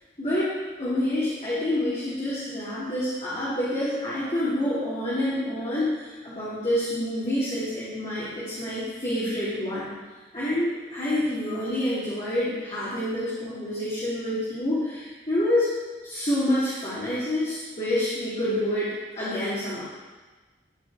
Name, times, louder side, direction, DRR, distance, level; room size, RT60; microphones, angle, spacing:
voice 1, 0.2-9.9 10.3-15.7 16.0-19.8, left 1 dB, 35° left, -12 dB, 2.8 m, -27 dB
13.0 x 5.1 x 4.9 m, 1.3 s
head